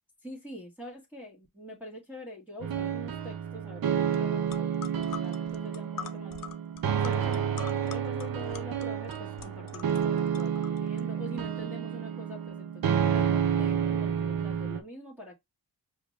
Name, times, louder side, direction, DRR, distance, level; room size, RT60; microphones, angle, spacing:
voice 1, 0.2-4.7 4.9-6.3 6.9-15.4, equal, 5° right, 1.7 m, -44 dB
sound 1, 2.6-14.8, right 8 dB, 50° right, 0.8 m, -30 dB
sound 2, 4.1-4.2 4.5-11.0, left 9 dB, 50° left, 0.7 m, -45 dB
4.9 x 2.7 x 3.2 m
supercardioid pair, 55°, 44 cm